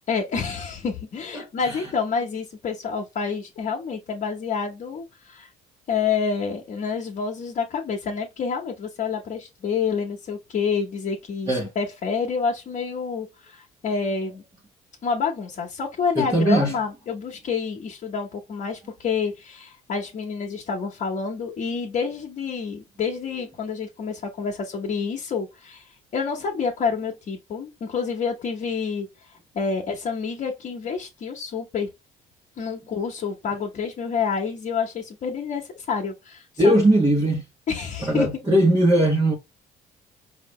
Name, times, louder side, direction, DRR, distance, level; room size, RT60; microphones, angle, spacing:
voice 1, 0.1-5.5 5.9-14.4 15.0-31.9 32.6-36.7 37.7-38.3, left 5 dB, 50° left, 1.2 m, -28 dB
voice 2, 1.3-1.9 11.5-11.7 16.2-16.7 36.6-37.4 38.0-39.3, right 1 dB, 20° right, 1.3 m, -19 dB
4.9 x 2.8 x 3.2 m
cardioid pair, 110°, 17 cm